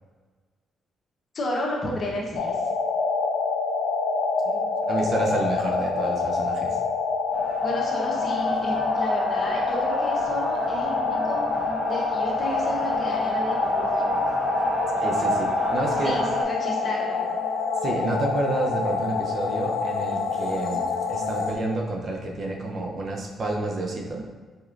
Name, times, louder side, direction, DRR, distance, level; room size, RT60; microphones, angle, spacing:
voice 1, 1.3-2.6 7.6-11.4 11.9-14.0 16.0-17.4, left 1 dB, 45° left, -2 dB, 0.9 m, -32 dB
sound 1, 2.4-21.5, left 4 dB, 90° left, 0.4 m, -27 dB
voice 2, 4.4-6.8 15.0-16.2 17.8-24.3, right 2 dB, 50° right, 0 dB, 0.6 m, -29 dB
sound 2, 7.3-16.4, right 1 dB, 15° right, 0.9 m, -29 dB
sound 3, 15.6-21.5, left 3 dB, 20° left, 0.7 m, -37 dB
4.3 x 3.0 x 2.5 m, 1.4 s
cardioid pair, 90°, 0 cm